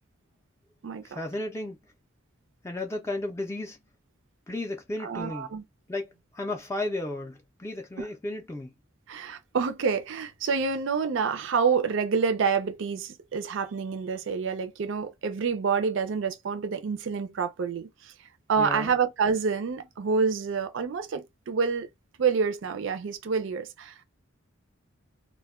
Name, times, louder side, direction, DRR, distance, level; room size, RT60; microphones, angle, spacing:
voice 1, 1.0-1.8 2.6-3.8 4.5-5.5 5.9-6.1 6.3-8.7 18.6-18.9, left 2 dB, 15° left, 0.4 m, -33 dB
voice 2, 5.0-5.6 8.0-8.1 9.1-18.1 18.5-21.9 22.2-24.0, right 5 dB, 60° right, 0.4 m, -28 dB
2.2 x 2.1 x 3.4 m
head